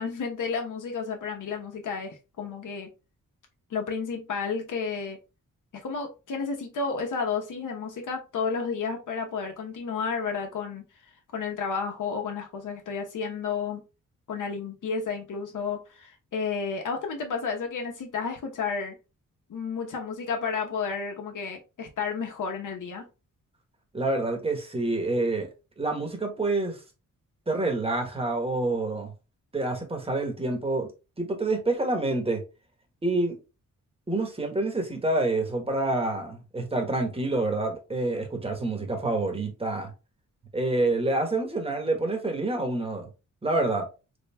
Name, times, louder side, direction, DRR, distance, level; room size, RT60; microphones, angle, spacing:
voice 1, 0.0-2.9 3.7-5.2 5.7-10.8 11.3-13.8 14.3-19.0 19.5-23.1, left 5 dB, 70° left, 0.9 m, -31 dB
voice 2, 23.9-25.5 25.8-26.8 27.5-29.1 29.5-30.9 31.2-32.4 33.0-33.3 34.1-39.9 40.5-43.1 43.4-43.9, right 2 dB, 15° right, 1.1 m, -27 dB
3.5 x 3.4 x 2.2 m
cardioid pair, 90°, 33 cm